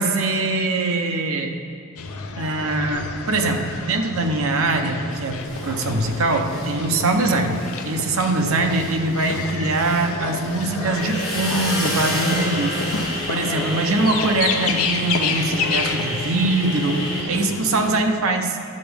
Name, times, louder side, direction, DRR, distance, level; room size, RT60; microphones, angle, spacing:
voice 1, 0.0-1.5 2.4-12.8 13.3-18.6, right 2 dB, 70° right, 5 dB, 0.7 m, -22 dB
sound 1, 2.0-18.0, left 4 dB, 75° left, 0.5 m, -30 dB
sound 2, 5.4-7.2 7.5-17.2, equal, ahead, 1.8 m, -30 dB
10.5 x 7.0 x 3.4 m, 2.4 s
head